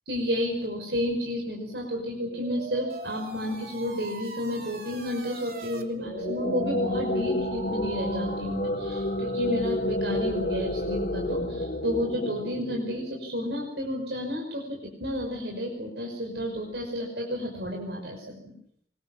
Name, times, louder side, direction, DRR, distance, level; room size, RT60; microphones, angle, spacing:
voice 1, 0.1-18.5, left 1 dB, 80° right, 1 dB, 5.8 m, -31 dB
sound 1, 2.0-9.5, right 2 dB, 55° right, 3.1 m, -40 dB
sound 2, 6.0-13.4, left 1 dB, 50° left, 2.7 m, -30 dB
24.5 x 22.0 x 7.3 m, 0.72 s
head